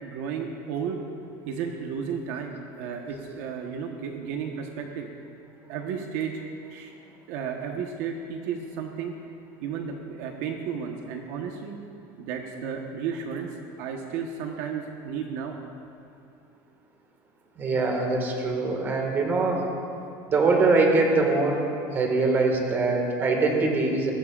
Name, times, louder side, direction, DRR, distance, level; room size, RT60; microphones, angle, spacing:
voice 1, 0.0-1.0 1.5-5.1 5.7-6.4 6.7-6.9 7.3-9.1 9.6-11.8 12.2-15.6, right 6 dB, 60° right, 2 dB, 1.2 m, -33 dB
voice 2, 17.6-19.7 20.3-21.6 21.9-24.1, right 3 dB, 20° right, 1 dB, 1.9 m, -23 dB
22.0 x 17.5 x 2.5 m, 2.6 s
cardioid pair, 175°, 10 cm